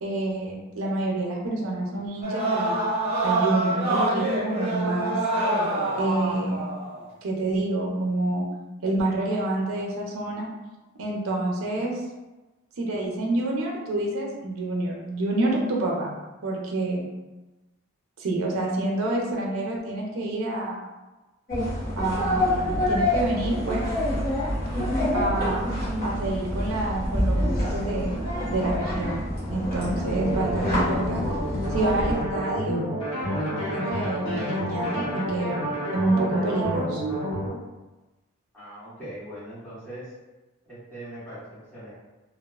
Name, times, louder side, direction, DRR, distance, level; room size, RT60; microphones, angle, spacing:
voice 1, 0.0-2.8 3.2-5.2 6.0-6.6 7.2-8.4 8.8-10.5 11.0-12.0 12.8-16.1 16.4-17.0 18.2-20.8 22.0-23.9 25.1-25.7 26.0-28.1 28.5-29.2 29.5-31.3 31.7-32.8 33.2-35.6 35.9-37.0, right 2 dB, 90° right, -1 dB, 0.5 m, -27 dB
sound 1, 2.2-7.0, right 2 dB, 30° right, 0.6 m, -26 dB
sound 2, 21.5-32.2, left 1 dB, 45° left, 0.9 m, -27 dB
sound 3, 29.8-37.5, equal, 75° left, 1.3 m, -30 dB
voice 2, 38.5-40.1 40.6-41.9, right 1 dB, 5° left, -13 dB, 1.2 m, -40 dB
2.4 x 2.3 x 2.3 m, 1.1 s
head